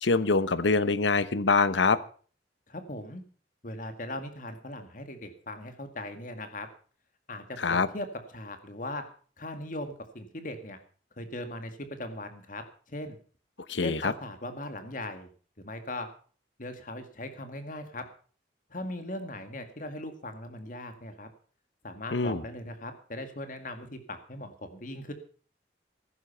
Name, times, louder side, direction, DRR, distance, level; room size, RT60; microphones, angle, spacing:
voice 1, 0.0-2.0 7.6-7.9 13.7-14.1 22.1-22.4, left 4 dB, 90° left, 15 dB, 0.9 m, -24 dB
voice 2, 2.7-3.2 3.6-6.7 7.3-8.1 8.3-9.0 9.4-10.8 11.2-13.2 13.8-15.3 15.6-16.1 16.6-18.0 18.7-21.3 21.8-25.1, left 1 dB, 50° left, 8 dB, 2.1 m, -39 dB
15.0 x 11.0 x 5.6 m, 0.43 s
head